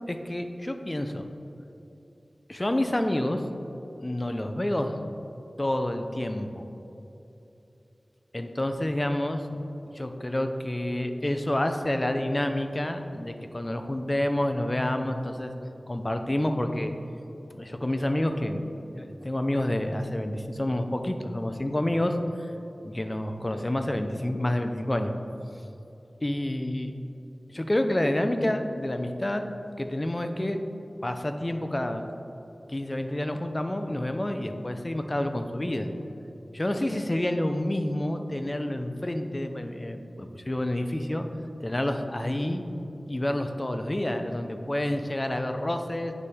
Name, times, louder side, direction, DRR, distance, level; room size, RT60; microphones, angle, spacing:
voice 1, 0.1-1.2 2.5-3.4 4.0-4.9 5.6-6.7 8.3-9.4 9.9-15.5 15.9-16.9 17.6-18.7 18.9-22.2 22.8-25.1 26.2-26.9 27.5-29.4 29.8-30.6 31.0-32.0 32.7-35.9 36.5-41.2 41.6-42.6 43.1-46.1, left 1 dB, 25° left, 6 dB, 0.6 m, -28 dB
9.3 x 6.7 x 3.6 m, 3.0 s
wide cardioid pair, 70°, 0 cm